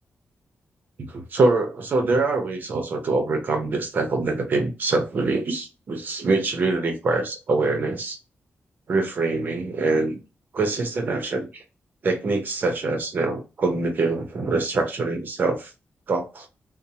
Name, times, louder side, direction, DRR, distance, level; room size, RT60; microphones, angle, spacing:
voice 1, 1.0-8.2 8.9-10.2 10.5-11.6 12.0-15.7 16.1-16.5, right 3 dB, 50° right, 0.7 m, -24 dB
2.8 x 2.1 x 2.8 m
wide cardioid pair, 155°, 4 cm